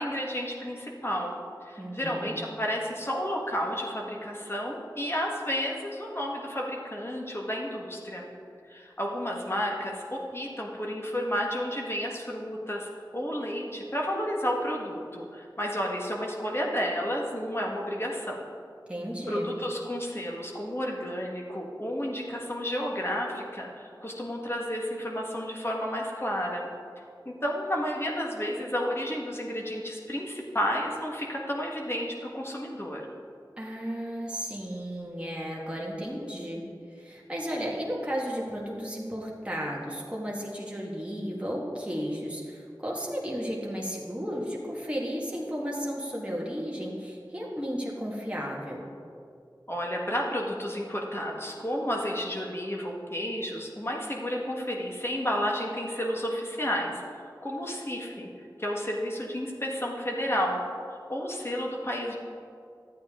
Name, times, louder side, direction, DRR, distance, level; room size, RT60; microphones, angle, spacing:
voice 1, 0.0-1.3 1.6-8.3 8.7-18.4 19.3-26.7 27.2-33.1 49.7-58.3 58.6-60.6 60.9-62.1, equal, 30° left, -2 dB, 1.6 m, -31 dB
voice 2, 1.8-2.4 18.9-19.5 33.6-36.6 36.9-48.8, equal, 15° right, -4 dB, 1.7 m, -34 dB
12.5 x 8.7 x 3.7 m, 2.4 s
wide cardioid pair, 40°, 8 cm